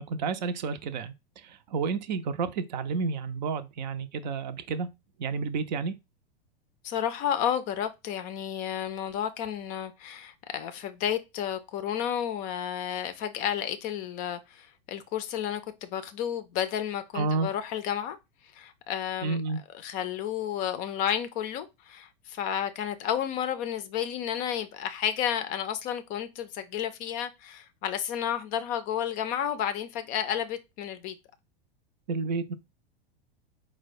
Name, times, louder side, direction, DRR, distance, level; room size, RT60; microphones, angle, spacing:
voice 1, 0.0-4.9 5.2-5.9 17.1-17.5 19.2-19.6 32.1-32.5, right 4 dB, 50° right, 0.5 m, -30 dB
voice 2, 6.8-18.2 18.5-19.4 19.7-31.1, left 9 dB, 30° left, 0.5 m, -31 dB
4.5 x 2.2 x 4.2 m
figure-of-eight pair, 95°, 29 cm